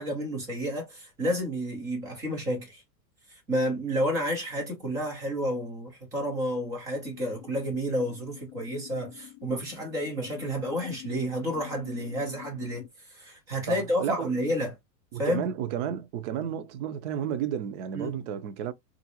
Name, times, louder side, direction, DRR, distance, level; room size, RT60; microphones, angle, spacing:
voice 1, 0.0-2.8 3.3-14.7 15.2-15.5 17.9-18.2, equal, 10° right, 0.3 m, -30 dB
sound 1, 7.0-12.9, left 16 dB, 55° left, 0.7 m, -46 dB
voice 2, 13.7-14.3 15.1-18.7, right 9 dB, 45° right, 0.7 m, -32 dB
3.7 x 2.5 x 2.8 m
hypercardioid pair, 130°, 49 cm